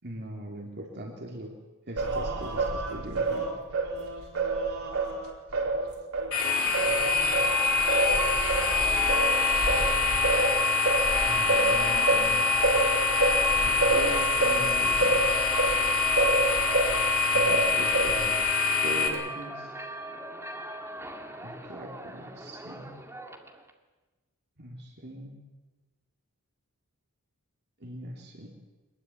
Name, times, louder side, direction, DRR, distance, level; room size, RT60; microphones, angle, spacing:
voice 1, 0.0-1.6 1.9-3.6 11.2-12.7 13.6-15.6 17.3-18.4 18.8-19.7 21.4-22.9 24.6-25.4 27.8-28.5, right 1 dB, 50° right, 1 dB, 3.5 m, -40 dB
Singing, 2.0-6.3 6.7-17.0 17.4-18.4, right 2 dB, 80° right, 4.4 m, -28 dB
sound 1, 6.3-19.1, left 5 dB, 75° left, 4.2 m, -25 dB
sound 2, 7.3-23.7, right 4 dB, 10° right, 2.2 m, -35 dB
23.5 x 21.5 x 8.8 m, 1.2 s
head